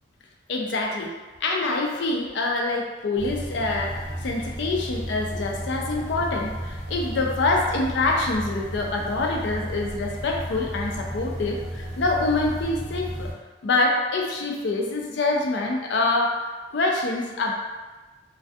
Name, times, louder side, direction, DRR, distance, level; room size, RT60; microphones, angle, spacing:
voice 1, 0.5-1.1 1.4-13.3 13.6-16.4 16.7-17.5, left 2 dB, 65° left, 0 dB, 0.4 m, -25 dB
sound 1, 3.2-13.3, right 1 dB, 30° left, 0.7 m, -33 dB
2.3 x 2.2 x 2.5 m, 1.2 s
head